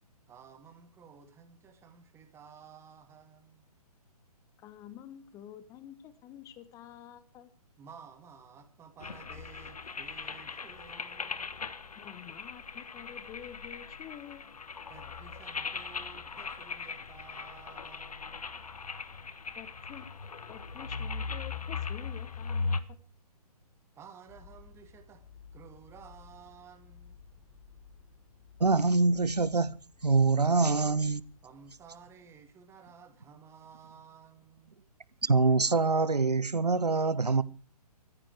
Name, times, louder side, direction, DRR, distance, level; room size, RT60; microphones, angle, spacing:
voice 1, 0.3-3.7 7.8-11.6 14.9-18.6 24.0-25.2 25.5-27.2 31.4-34.8, right 6 dB, 10° right, 2.2 m, -54 dB
voice 2, 4.6-7.5 12.0-14.5 19.6-20.1 20.5-23.0, left 10 dB, 15° left, 1.0 m, -48 dB
sound 1, 9.0-22.8, left 4 dB, 65° left, 1.4 m, -39 dB
sound 2, 24.3-32.6, left 6 dB, 40° left, 5.1 m, -56 dB
voice 3, 28.6-31.2 35.2-37.4, right 3 dB, 80° right, 1.0 m, -25 dB
16.0 x 14.0 x 4.8 m
figure-of-eight pair, 130°, 20 cm